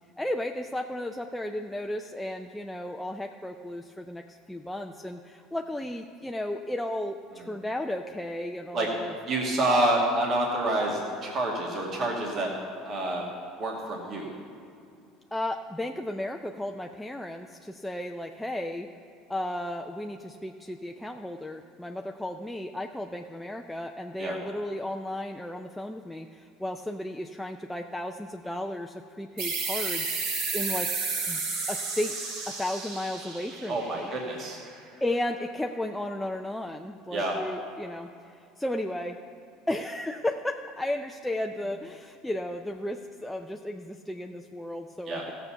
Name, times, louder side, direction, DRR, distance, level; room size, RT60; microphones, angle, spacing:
voice 1, 0.2-9.1 15.3-18.9 19.3-30.9 31.3-31.4 31.7-32.2 32.5-34.1 35.0-38.1 38.6-39.2 39.7-45.3, left 1 dB, 5° left, 3 dB, 0.5 m, -34 dB
voice 2, 9.3-12.5 12.8-13.3 13.6-14.3 24.2-24.4 33.7-34.6 37.1-37.4 45.1-45.3, right 1 dB, 45° right, -1 dB, 2.0 m, -28 dB
sound 1, 29.4-34.7, right 4 dB, 70° right, 2.0 m, -32 dB
15.0 x 6.8 x 5.7 m, 2.5 s
hypercardioid pair, 85°, 0 cm